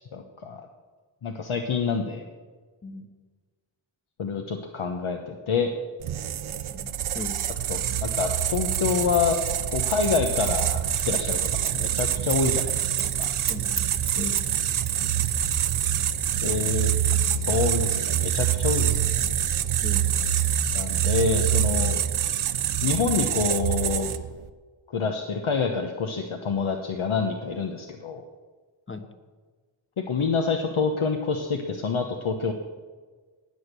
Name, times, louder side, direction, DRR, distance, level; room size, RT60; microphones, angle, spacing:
voice 1, 0.1-0.7 1.2-2.2 4.2-5.7 7.7-9.4 9.7-13.3 16.4-16.9 17.5-19.0 20.7-22.0 22.8-24.1 24.9-28.2 30.1-32.5, left 5 dB, 75° left, 4 dB, 1.1 m, -27 dB
sound 1, 6.0-24.4, right 10 dB, 80° right, 0.7 m, -25 dB
voice 2, 6.7-7.4 13.5-13.9 14.1-14.4 16.4-16.6 19.8-20.1 28.9-29.1, left 3 dB, 25° left, 7 dB, 1.3 m, -37 dB
Scissors, 8.4-14.6 14.8-16.1, right 6 dB, 35° right, 0.7 m, -35 dB
19.0 x 6.5 x 6.8 m, 1.4 s
wide cardioid pair, 80°, 49 cm